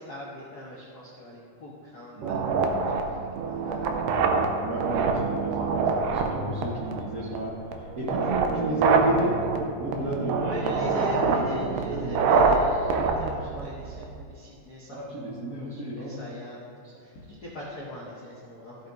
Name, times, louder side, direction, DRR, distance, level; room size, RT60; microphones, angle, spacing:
voice 1, 0.0-2.4 2.8-3.9 4.8-5.9 7.2-7.3 10.4-18.8, left 1 dB, 85° left, -6 dB, 0.8 m, -42 dB
sound 1, 2.2-14.2, right 4 dB, 90° right, 2.4 m, -26 dB
voice 2, 4.1-9.4 9.8-12.1 14.9-16.2, right 1 dB, 70° right, -7 dB, 0.8 m, -32 dB
15.0 x 7.9 x 2.6 m, 2.3 s
omnidirectional pair, 3.8 m